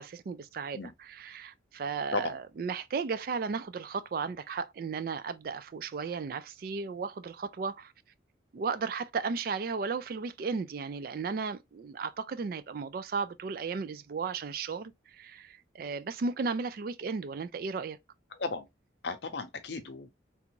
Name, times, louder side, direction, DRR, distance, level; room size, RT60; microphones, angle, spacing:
voice 1, 0.0-7.9 8.5-18.0, right 5 dB, 50° right, 0.3 m, -35 dB
voice 2, 18.3-18.7 19.0-20.1, left 4 dB, 65° left, 0.6 m, -35 dB
3.4 x 2.5 x 2.9 m
head